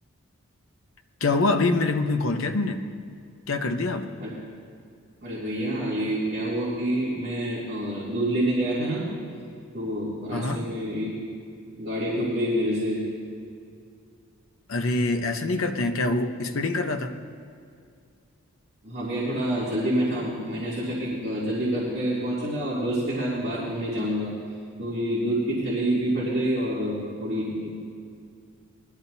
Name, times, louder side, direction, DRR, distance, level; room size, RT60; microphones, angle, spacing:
voice 1, 1.2-2.8 3.5-4.1 10.3-10.7 14.7-17.1, left 2 dB, 65° left, 6 dB, 0.8 m, -25 dB
voice 2, 5.2-9.1 9.7-11.1 11.8-13.0 18.8-24.3 24.8-27.7, right 1 dB, 45° right, -11 dB, 2.7 m, -27 dB
19.5 x 13.0 x 2.7 m, 2.3 s
head